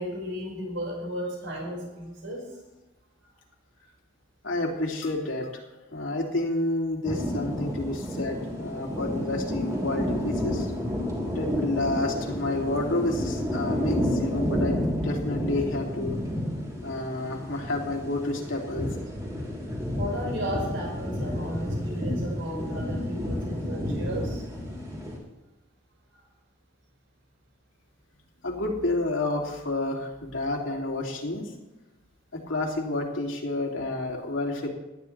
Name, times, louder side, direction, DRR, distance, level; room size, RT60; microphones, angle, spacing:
voice 1, 0.0-2.4 17.0-17.1 20.0-24.4, equal, 80° right, -2 dB, 5.1 m, -34 dB
voice 2, 4.4-5.6 5.9-10.7 11.3-16.2 16.8-18.9 28.4-31.5 32.3-34.7, left 2 dB, 90° left, 0 dB, 2.8 m, -29 dB
sound 1, 7.1-25.2, left 1 dB, 20° right, 3.4 m, -31 dB
18.5 x 12.0 x 3.3 m, 1.0 s
head